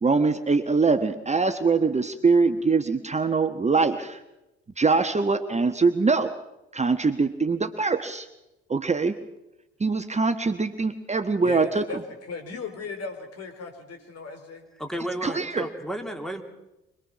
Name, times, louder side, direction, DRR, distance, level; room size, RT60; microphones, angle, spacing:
voice 1, 0.0-4.2 4.8-6.3 6.7-8.3 8.7-9.1 9.8-11.8 15.2-15.6, right 4 dB, 20° right, 9 dB, 1.3 m, -23 dB
voice 2, 11.4-14.7, left 4 dB, 45° left, 6 dB, 4.5 m, -36 dB
voice 3, 14.8-16.4, right 1 dB, ahead, 4 dB, 2.9 m, -32 dB
25.5 x 20.5 x 6.0 m, 0.94 s
figure-of-eight pair, 50°, 34 cm